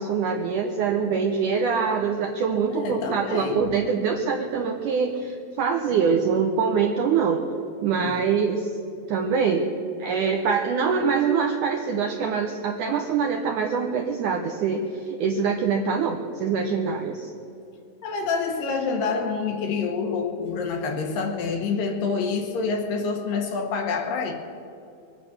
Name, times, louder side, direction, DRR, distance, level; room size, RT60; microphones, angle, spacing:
voice 1, 0.0-7.4 7.8-8.7 9.1-9.7 10.0-17.3, right 6 dB, 80° right, 3 dB, 1.8 m, -24 dB
voice 2, 2.7-3.6 8.0-8.1 18.0-24.3, left 4 dB, 65° left, 4 dB, 2.6 m, -27 dB
23.5 x 8.7 x 6.2 m, 2.6 s
omnidirectional pair, 4.6 m